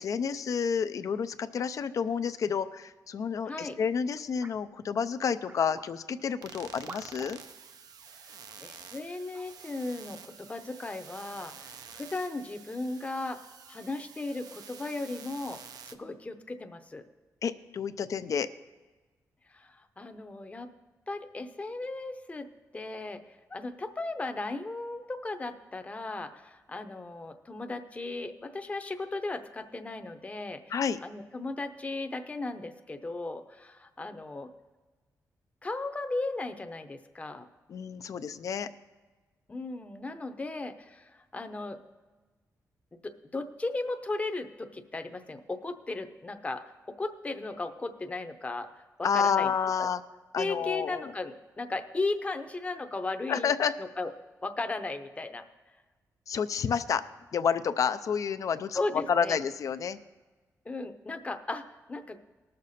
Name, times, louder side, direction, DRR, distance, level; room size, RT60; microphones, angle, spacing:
voice 1, 0.0-7.4 17.4-18.5 30.7-31.0 37.7-38.7 49.0-50.0 50.3-51.1 53.3-53.7 56.3-57.0 57.3-58.8 59.1-60.0, left 7 dB, 60° left, 10 dB, 0.5 m, -29 dB
voice 2, 3.5-3.8 8.2-13.4 13.7-17.0 19.5-20.7 21.1-22.5 22.7-30.7 31.0-34.5 35.6-37.5 39.5-41.8 43.0-49.5 49.8-49.9 50.4-53.5 53.8-54.1 54.4-55.4 58.7-59.4 60.7-62.3, left 2 dB, 20° left, 7 dB, 0.7 m, -36 dB
sound 1, 4.4-4.6 5.4-5.9 6.9-7.3 8.5-8.6 9.3-9.5, right 3 dB, 30° right, 0.7 m, -47 dB
sound 2, 6.4-16.0, right 7 dB, 80° right, 0.6 m, -49 dB
19.0 x 6.6 x 4.2 m, 1.3 s
wide cardioid pair, 130°, 6 cm